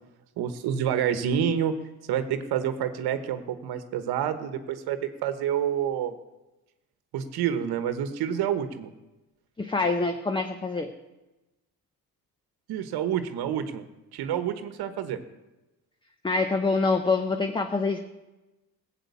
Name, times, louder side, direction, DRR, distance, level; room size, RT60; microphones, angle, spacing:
voice 1, 0.4-1.7 2.1-6.1 7.1-8.9 12.7-13.8 14.1-15.2, right 9 dB, 85° right, 10 dB, 1.1 m, -28 dB
voice 2, 9.6-10.9 16.2-18.0, left 3 dB, 15° left, 7 dB, 0.8 m, -25 dB
15.5 x 7.7 x 8.3 m, 1.0 s
cardioid pair, 125°, 37 cm